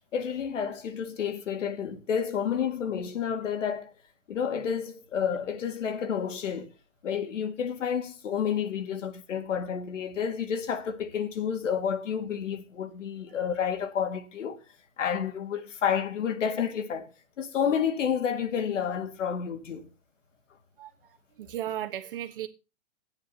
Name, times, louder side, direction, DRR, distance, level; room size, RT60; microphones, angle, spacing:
voice 1, 0.1-3.9 4.3-6.7 7.0-14.6 15.0-17.1 17.4-19.9, left 7 dB, 85° left, 2.2 m, -30 dB
voice 2, 20.8-22.5, right 12 dB, 45° right, 1.3 m, -36 dB
12.0 x 9.5 x 4.1 m
hypercardioid pair, 175°, 37 cm